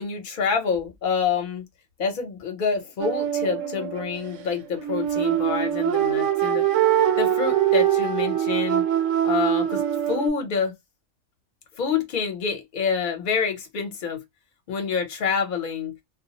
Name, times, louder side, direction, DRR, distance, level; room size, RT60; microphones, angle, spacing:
voice 1, 0.0-1.6 2.0-6.6 7.2-8.8 9.2-10.7 11.7-14.2 14.7-16.0, left 6 dB, 50° left, 0.8 m, -27 dB
sound 1, 3.0-10.3, right 11 dB, 90° right, 1.0 m, -23 dB
2.2 x 2.0 x 2.8 m
omnidirectional pair, 1.2 m